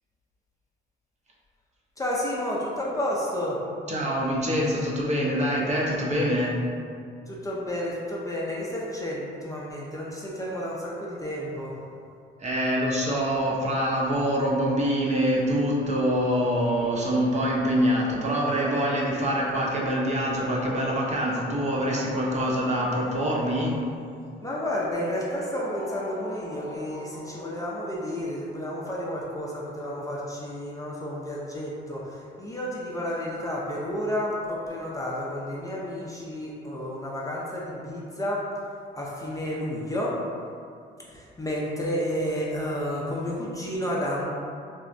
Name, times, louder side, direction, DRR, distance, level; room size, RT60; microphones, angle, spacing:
voice 1, 2.0-3.6 7.3-11.8 24.4-38.4 39.0-40.1 41.1-44.2, equal, 15° left, -5 dB, 0.4 m, -31 dB
voice 2, 3.9-6.6 12.4-23.8, equal, 35° right, -4 dB, 0.6 m, -25 dB
sound 1, 14.2-28.6, right 1 dB, 90° right, 0.8 m, -44 dB
3.4 x 2.0 x 2.5 m, 2.4 s
cardioid pair, 90°, 20 cm